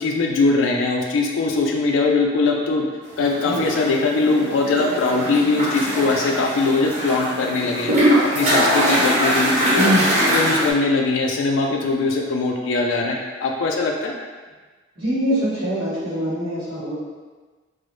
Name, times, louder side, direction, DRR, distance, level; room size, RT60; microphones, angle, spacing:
voice 1, 0.0-2.9 3.2-7.9 8.3-9.9 10.3-14.1, left 3 dB, 75° left, 1 dB, 0.3 m, -21 dB
sound 1, 3.2-10.7, equal, 35° right, 0.6 m, -22 dB
voice 2, 9.7-10.4 15.0-16.9, equal, 85° right, -14 dB, 1.1 m, -23 dB
2.3 x 2.0 x 3.0 m, 1.4 s
head